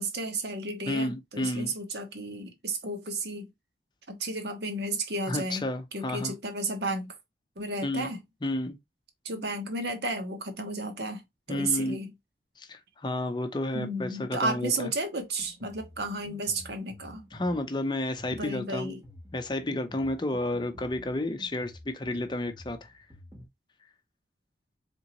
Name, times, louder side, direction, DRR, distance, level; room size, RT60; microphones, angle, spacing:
voice 1, 0.0-3.5 4.1-7.2 7.6-8.2 9.2-11.2 11.5-12.1 13.7-17.2 18.4-19.0, right 2 dB, 75° right, 1.1 m, -33 dB
voice 2, 0.9-1.7 5.3-6.3 7.8-8.1 8.4-8.8 11.5-12.0 12.6-14.9 17.3-19.0 19.3-22.9, left 1 dB, 25° left, 0.6 m, -31 dB
Drum kit, 15.2-23.5, equal, 20° right, 0.9 m, -50 dB
3.9 x 3.6 x 3.0 m
head